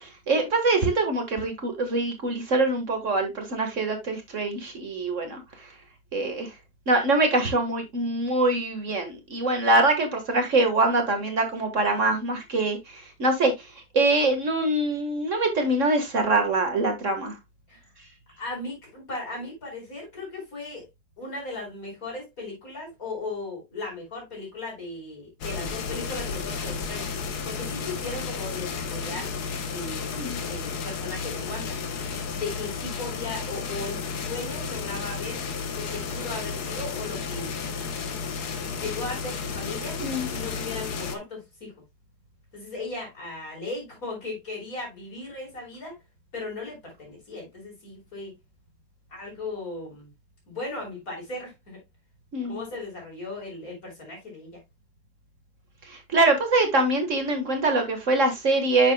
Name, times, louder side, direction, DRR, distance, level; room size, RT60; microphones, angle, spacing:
voice 1, 0.0-5.7 6.1-6.5 6.9-17.4 30.2-30.4 40.0-40.3 52.3-52.6 55.8-58.9, right 2 dB, 50° right, 1.9 m, -24 dB
voice 2, 18.4-20.9 21.2-27.1 27.4-29.4 29.7-31.7 32.4-35.4 35.7-37.7 38.8-40.0 40.3-41.7 42.5-46.0 46.3-48.3 49.1-50.1 50.5-51.8 52.5-54.5, left 2 dB, 60° left, 5.0 m, -37 dB
sound 1, 25.4-41.2, left 5 dB, 80° left, 1.7 m, -32 dB
9.5 x 6.8 x 2.2 m
omnidirectional pair, 1.7 m